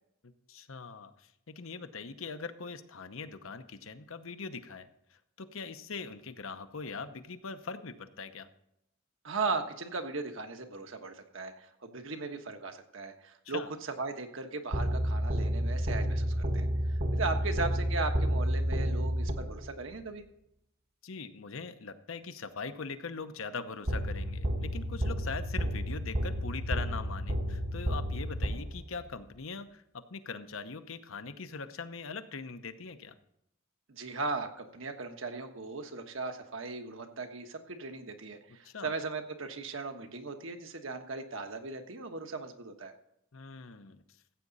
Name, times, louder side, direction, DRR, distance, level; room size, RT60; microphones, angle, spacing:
voice 1, 0.2-8.5 13.4-13.7 17.3-17.6 21.0-33.2 38.6-38.9 43.3-44.0, left 4 dB, 75° left, 10 dB, 0.9 m, -42 dB
voice 2, 9.2-20.2 33.9-42.9, right 3 dB, 70° right, 6 dB, 1.3 m, -37 dB
sound 1, 14.7-19.8 23.9-29.1, equal, 45° right, 1.1 m, -31 dB
14.5 x 8.5 x 4.1 m, 0.79 s
head